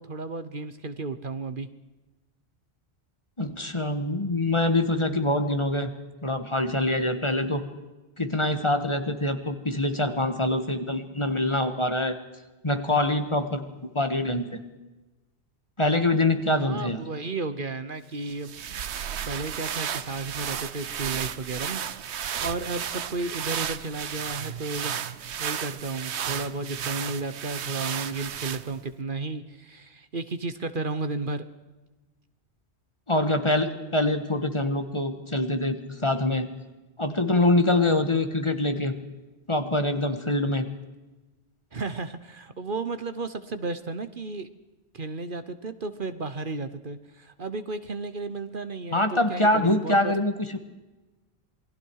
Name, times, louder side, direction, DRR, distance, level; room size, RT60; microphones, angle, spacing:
voice 1, 0.0-1.7 16.5-18.5 19.2-21.8 22.1-25.0 25.4-31.4 41.7-44.5 44.9-50.1, right 3 dB, 50° right, 11 dB, 1.2 m, -33 dB
voice 2, 3.4-5.9 6.2-7.6 8.2-12.2 12.6-13.7 13.9-14.6 15.8-17.0 33.1-36.5 37.0-39.0 39.5-40.7 48.9-50.6, left 1 dB, 25° left, 8 dB, 1.7 m, -25 dB
sound 1, 18.3-28.9, right 8 dB, 85° right, 1.1 m, -33 dB
28.0 x 21.0 x 4.8 m, 1.1 s
omnidirectional pair, 1.1 m